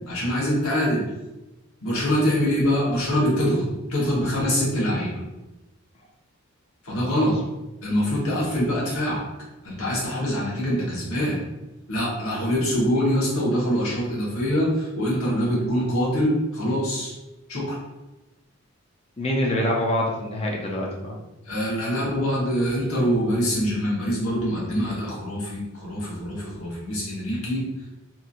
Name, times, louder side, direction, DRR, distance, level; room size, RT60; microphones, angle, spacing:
voice 1, 0.1-1.0 1.8-5.1 6.8-7.3 7.8-9.2 9.6-11.4 11.9-17.1 17.5-17.8 21.4-27.6, equal, 80° left, -5 dB, 1.1 m, -24 dB
voice 2, 19.2-21.2, left 1 dB, 25° left, -1 dB, 0.4 m, -25 dB
2.9 x 2.6 x 2.4 m, 1.0 s
head